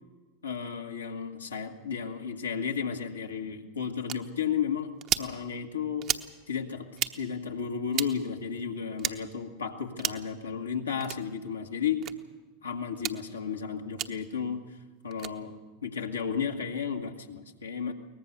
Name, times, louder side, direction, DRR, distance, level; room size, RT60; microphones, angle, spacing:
voice 1, 0.4-4.9 5.2-6.0 6.5-6.9 7.2-12.0 12.6-14.6 15.0-15.6 15.8-17.9, left 7 dB, 90° left, 2 dB, 1.9 m, -33 dB
sound 1, 4.1-4.2 5.0-5.3 6.0-6.3 6.9-7.1 7.9-8.1 9.0-9.2 10.0-10.3 11.0-11.2 12.0-12.1 13.0-13.2 14.0-14.1 15.1-15.3, right 11 dB, 45° right, 1.0 m, -31 dB
22.5 x 19.0 x 6.8 m, 1.3 s
hypercardioid pair, 90°, 0 cm